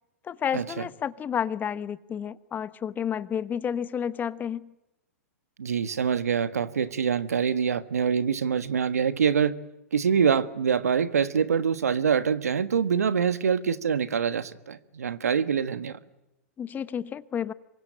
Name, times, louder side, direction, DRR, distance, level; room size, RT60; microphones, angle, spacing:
voice 1, 0.2-4.7 16.6-17.5, left 8 dB, 20° left, 0.9 m, -31 dB
voice 2, 5.6-9.6 9.9-16.0, right 7 dB, 80° right, 1.4 m, -25 dB
26.5 x 23.5 x 8.9 m
hypercardioid pair, 110°, 8 cm